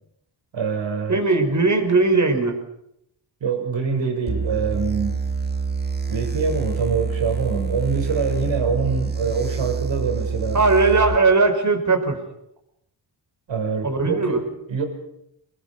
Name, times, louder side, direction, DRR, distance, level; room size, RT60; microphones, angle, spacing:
voice 1, 0.5-1.2 3.4-5.2 6.1-10.6 13.5-14.9, right 5 dB, 80° right, 4 dB, 6.3 m, -25 dB
voice 2, 1.1-2.6 10.5-12.2 13.8-14.4, right 3 dB, 40° right, 5 dB, 5.2 m, -18 dB
sound 1, 4.3-11.2, right 5 dB, 20° right, 2.0 m, -26 dB
24.5 x 21.0 x 7.0 m, 0.79 s
cardioid pair, 85°, 44 cm